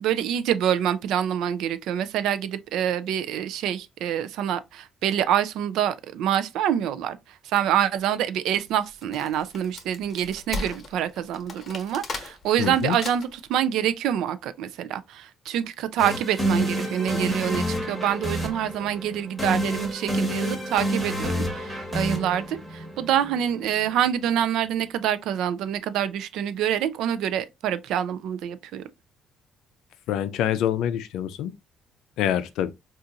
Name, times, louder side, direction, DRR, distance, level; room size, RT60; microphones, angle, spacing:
voice 1, 0.0-28.8, right 10 dB, 85° right, 0.4 m, -26 dB
Wood, 8.8-13.5, left 3 dB, 35° left, 1.0 m, -37 dB
voice 2, 12.6-13.0 30.1-31.5 32.2-32.7, left 10 dB, 85° left, 0.4 m, -26 dB
sound 1, 16.0-23.9, equal, ahead, 1.0 m, -29 dB
3.8 x 2.4 x 2.7 m
cardioid pair, 125°, 0 cm